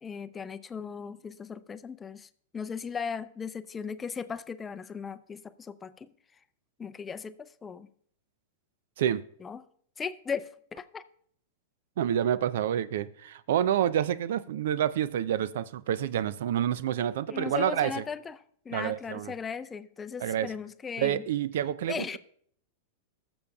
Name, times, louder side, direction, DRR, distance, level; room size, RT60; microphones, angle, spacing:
voice 1, 0.0-6.1 6.8-7.9 9.4-9.7 10.0-11.0 17.3-18.4 18.6-21.2 21.9-22.2, left 6 dB, 20° left, 0.4 m, -37 dB
voice 2, 12.0-18.0 18.7-19.3 20.2-20.5 21.0-22.2, right 10 dB, 70° right, 0.4 m, -28 dB
18.5 x 6.9 x 2.3 m
hypercardioid pair, 115°, 0 cm